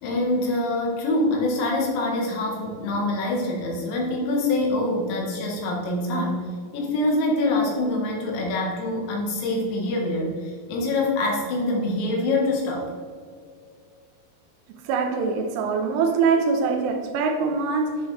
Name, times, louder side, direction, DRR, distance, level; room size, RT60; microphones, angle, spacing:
voice 1, 0.0-12.9, left 2 dB, 75° left, -1 dB, 3.9 m, -25 dB
voice 2, 14.9-18.0, right 5 dB, 85° right, 4 dB, 3.5 m, -23 dB
10.5 x 7.3 x 3.4 m, 2.1 s
omnidirectional pair, 5.5 m